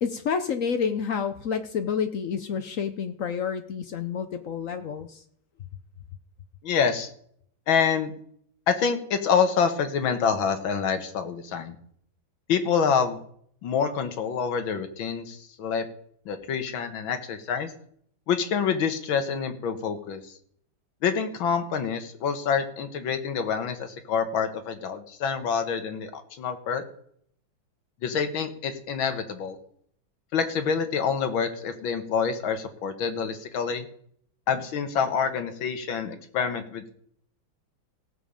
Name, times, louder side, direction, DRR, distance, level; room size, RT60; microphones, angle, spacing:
voice 1, 0.0-5.2, left 6 dB, 65° left, 9 dB, 0.8 m, -29 dB
voice 2, 6.6-7.1 7.7-8.1 8.7-11.8 12.5-13.2 13.6-15.9 16.3-17.7 18.3-20.3 21.0-26.8 28.0-29.6 30.3-33.9 34.5-36.9, left 6 dB, 85° left, 8 dB, 2.0 m, -27 dB
17.0 x 7.2 x 5.0 m, 0.66 s
omnidirectional pair, 2.1 m